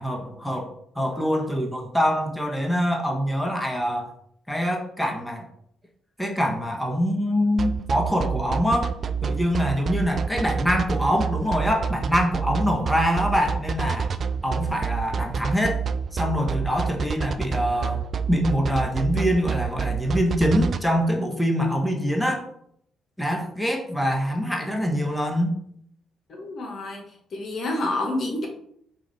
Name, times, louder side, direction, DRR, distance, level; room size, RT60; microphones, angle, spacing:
voice 1, 0.0-4.1 4.5-5.4 6.2-8.9 9.2-14.1 14.4-15.8 16.1-18.0 18.3-22.4 23.2-25.5, equal, 5° left, 2 dB, 1.0 m, -24 dB
sound 1, 7.6-20.8, right 6 dB, 50° right, 0.3 m, -27 dB
voice 2, 26.3-27.0 27.3-28.5, left 2 dB, 60° left, 2 dB, 1.1 m, -28 dB
4.8 x 2.5 x 4.1 m, 0.68 s
supercardioid pair, 55°, 0 cm